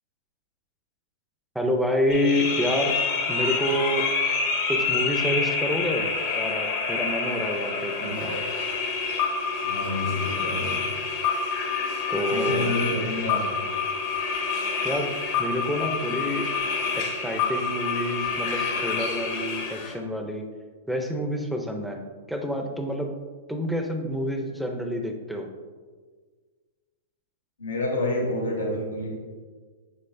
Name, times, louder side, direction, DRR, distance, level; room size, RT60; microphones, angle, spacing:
voice 1, 1.5-3.0 3.3-4.1 4.7-8.3 12.1-12.7 14.8-15.1 15.4-16.5 16.9-20.4 20.9-22.0 22.3-23.1 23.5-25.5, equal, ahead, 3 dB, 0.5 m, -28 dB
sound 1, 2.1-19.9, left 5 dB, 50° left, 0.9 m, -27 dB
voice 2, 8.0-8.5 9.6-10.8 12.3-13.6 27.6-29.1, left 2 dB, 90° left, -1 dB, 1.1 m, -29 dB
6.7 x 3.1 x 2.6 m, 1.5 s
hypercardioid pair, 120°, 0 cm